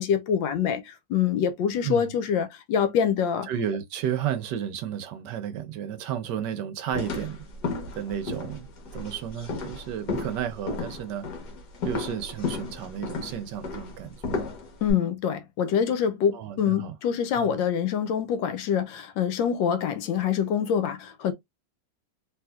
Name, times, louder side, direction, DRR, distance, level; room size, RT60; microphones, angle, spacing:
voice 1, 0.0-3.5 14.8-21.3, left 8 dB, 80° left, 1.4 m, -25 dB
voice 2, 3.5-7.4 8.0-8.7 8.9-11.3 11.8-14.4 16.3-16.9 17.4-17.6, right 9 dB, 75° right, 1.2 m, -32 dB
sound 1, 6.9-14.9, left 3 dB, 60° left, 1.6 m, -34 dB
3.4 x 3.0 x 2.2 m
omnidirectional pair, 2.1 m